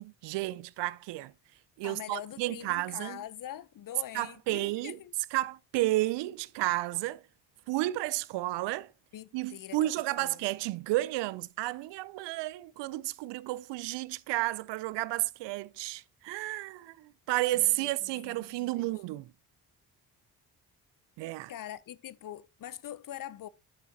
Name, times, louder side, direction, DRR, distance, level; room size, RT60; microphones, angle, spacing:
voice 1, 0.0-1.3 1.8-3.2 4.1-5.0 5.3-7.2 7.7-8.9 9.3-19.2 21.2-21.5, right 17 dB, 70° right, 0.6 m, -32 dB
voice 2, 1.8-5.1 9.1-9.8 10.2-10.4 17.5-18.9 21.5-23.5, left 11 dB, 50° left, 0.7 m, -44 dB
10.5 x 6.9 x 2.8 m
supercardioid pair, 55°, 44 cm